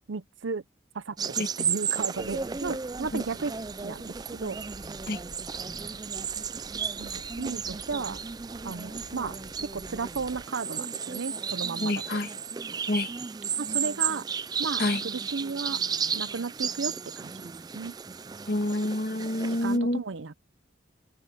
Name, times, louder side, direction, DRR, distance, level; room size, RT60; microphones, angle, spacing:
voice 1, 0.1-0.6 0.9-3.5 3.8-4.6 7.0-8.2 8.6-9.4 9.7-12.0 13.6-14.3 14.6-15.8 16.1-17.9 19.6-20.3, right 4 dB, 80° right, 0.7 m, -34 dB
sound 1, 1.2-19.8, right 6 dB, 20° right, 0.3 m, -34 dB
sound 2, 2.1-10.5, left 1 dB, 90° left, 5.1 m, -50 dB
voice 2, 11.8-12.3 12.9-13.1 14.8-15.0 18.5-20.0, left 1 dB, 50° left, 1.7 m, -27 dB
head